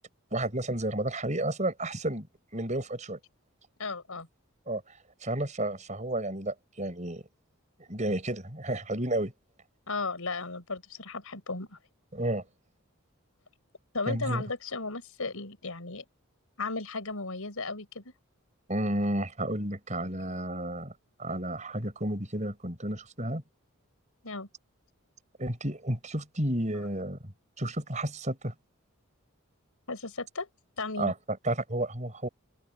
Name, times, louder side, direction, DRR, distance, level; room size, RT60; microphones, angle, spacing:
voice 1, 0.3-2.3 2.5-3.2 4.7-7.2 7.9-9.3 12.1-12.4 14.1-14.4 18.7-20.9 21.2-23.4 25.4-28.5 31.0-32.3, right 1 dB, 35° right, 5.7 m, -32 dB
voice 2, 3.8-4.3 9.9-11.8 13.9-16.0 16.6-18.0 24.2-24.5 29.9-30.5 30.8-31.1, left 3 dB, 90° left, 4.5 m, -35 dB
open air
head